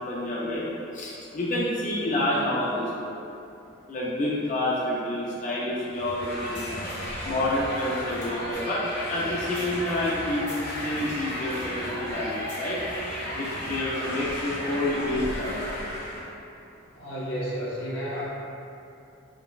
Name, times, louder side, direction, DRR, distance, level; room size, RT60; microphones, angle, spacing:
voice 1, 0.1-0.7 0.9-3.1 3.9-6.8 7.2-12.8 13.3-15.6, left 1 dB, 40° left, -7 dB, 0.4 m, -28 dB
sound 1, 5.9-16.3, equal, 70° left, 1.3 m, -34 dB
voice 2, 16.9-18.2, equal, 85° left, -8 dB, 0.9 m, -32 dB
5.0 x 2.1 x 2.4 m, 2.7 s
head